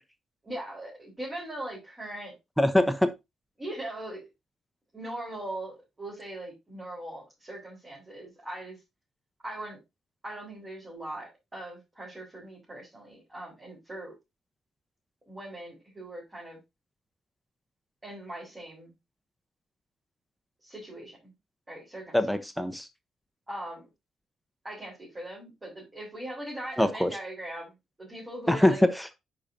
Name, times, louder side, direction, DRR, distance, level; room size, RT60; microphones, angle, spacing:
voice 1, 0.4-2.3 3.6-4.3 4.9-8.8 9.4-9.8 10.2-14.1 15.3-16.6 18.0-18.9 20.6-21.3 21.7-22.2 23.5-23.9 24.6-28.8, right 1 dB, 25° right, 4.4 m, -40 dB
voice 2, 2.6-3.1 22.1-22.9 26.8-27.1 28.5-29.1, left 1 dB, ahead, 0.9 m, -23 dB
10.0 x 5.1 x 2.8 m
figure-of-eight pair, 40°, 0 cm